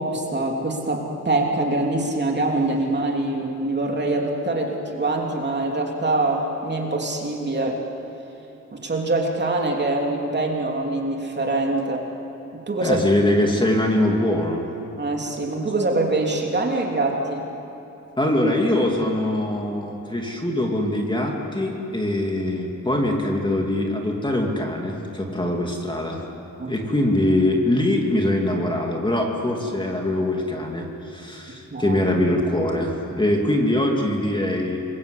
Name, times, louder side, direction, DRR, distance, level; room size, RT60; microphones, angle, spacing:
voice 1, 0.0-7.8 8.7-12.0 12.5-13.0 15.0-17.4 26.6-26.7 31.7-32.0, right 2 dB, 35° right, 0 dB, 3.1 m, -24 dB
voice 2, 12.8-14.7 18.2-26.2 26.7-34.8, left 1 dB, 15° left, 0 dB, 2.6 m, -23 dB
28.5 x 22.0 x 8.4 m, 2.9 s
wide cardioid pair, 150°, 31 cm